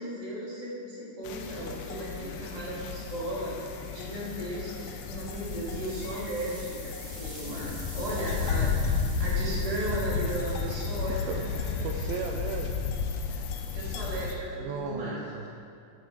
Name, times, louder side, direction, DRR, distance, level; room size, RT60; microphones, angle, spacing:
voice 1, 0.0-11.3 11.5-11.9 13.3-13.5 13.7-15.2, right 1 dB, 10° right, -7 dB, 2.0 m, -36 dB
sound 1, 1.2-14.3, left 5 dB, 75° left, 2.1 m, -33 dB
sound 2, 5.0-12.1, right 2 dB, 70° right, 5.0 m, -49 dB
voice 2, 11.3-13.0 14.6-15.5, right 6 dB, 90° right, 2 dB, 2.1 m, -36 dB
15.0 x 8.2 x 4.8 m, 2.5 s
omnidirectional pair, 5.1 m